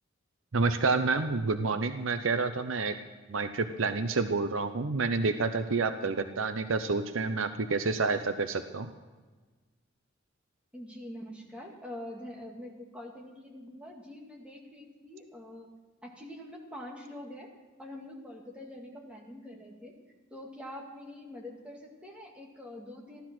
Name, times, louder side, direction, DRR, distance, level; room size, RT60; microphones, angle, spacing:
voice 1, 0.5-3.0 3.3-8.9, right 4 dB, 85° right, 9 dB, 0.8 m, -29 dB
voice 2, 10.7-15.7 16.0-17.5 17.8-20.0 20.3-23.2, left 1 dB, 5° right, -1 dB, 2.1 m, -45 dB
15.5 x 12.0 x 6.1 m, 1.3 s
head